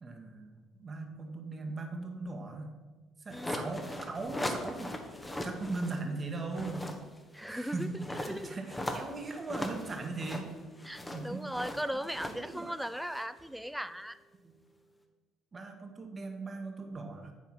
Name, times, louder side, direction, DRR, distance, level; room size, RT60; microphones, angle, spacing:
voice 1, 0.0-2.7 3.2-4.9 5.4-6.9 7.5-10.5 11.1-11.4 11.9-12.0 12.3-12.7 14.4-14.5 15.5-17.3, right 3 dB, 35° right, 4 dB, 1.4 m, -39 dB
sound 1, 3.3-6.0 6.4-13.4, left 1 dB, 15° left, 1.2 m, -40 dB
voice 2, 7.3-8.6 10.8-14.2, equal, ahead, 13 dB, 0.4 m, -38 dB
8.6 x 4.4 x 6.0 m, 1.3 s
hypercardioid pair, 60°, 0 cm